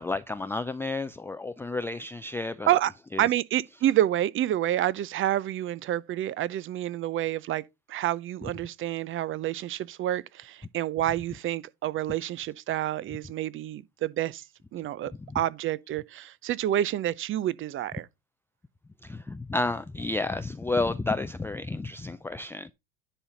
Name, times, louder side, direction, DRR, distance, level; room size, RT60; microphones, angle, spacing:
voice 1, 0.0-2.7 3.1-3.3 15.3-15.4 19.0-22.7, left 2 dB, 5° left, 0.4 m, -31 dB
voice 2, 3.2-7.6 7.9-14.4 14.7-18.1, right 12 dB, 40° right, 0.6 m, -28 dB
10.0 x 4.1 x 5.0 m
hypercardioid pair, 85°, 32 cm